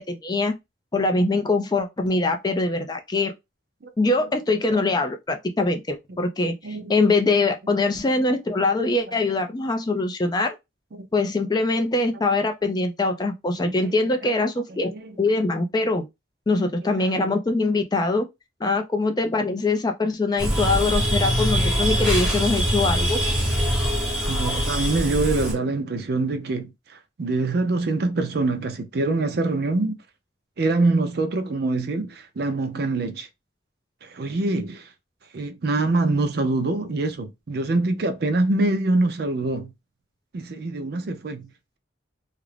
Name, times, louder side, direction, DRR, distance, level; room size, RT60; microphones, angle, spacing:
voice 1, 0.1-0.5 0.9-3.3 4.0-10.6 11.1-14.9 15.2-16.1 16.5-18.3 18.6-23.2 23.7-23.9 36.1-36.2, left 3 dB, 20° left, 0.3 m, -23 dB
voice 2, 6.6-6.9 8.8-8.9 11.0-11.3 13.6-14.3 14.9-15.1 17.0-17.2 24.3-30.0 30.6-33.3 34.0-34.9 35.3-39.7 40.3-41.5, right 2 dB, 55° right, 0.4 m, -25 dB
sound 1, 20.4-25.5, equal, 5° right, 0.8 m, -23 dB
2.4 x 2.0 x 3.1 m
head